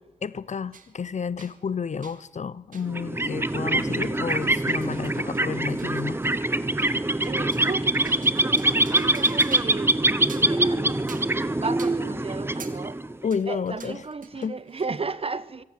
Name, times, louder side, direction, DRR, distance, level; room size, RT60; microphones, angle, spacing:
voice 1, 0.2-6.2 13.2-14.0 14.4-14.6, left 6 dB, 60° left, 0.8 m, -31 dB
sound 1, 0.7-0.9 1.4-1.6 2.0-2.2 2.7-2.9 3.2-9.9 10.2-10.6 11.1-11.4 11.8-12.0 12.6-12.8 13.3-15.0, right 6 dB, 75° right, 2.3 m, -46 dB
sound 2, 2.9-13.3, right 2 dB, 15° right, 1.1 m, -24 dB
voice 2, 7.2-11.0 11.6-13.0 13.4-15.6, right 4 dB, 45° right, 1.2 m, -34 dB
24.5 x 17.5 x 7.6 m
cardioid pair, 65°, 14 cm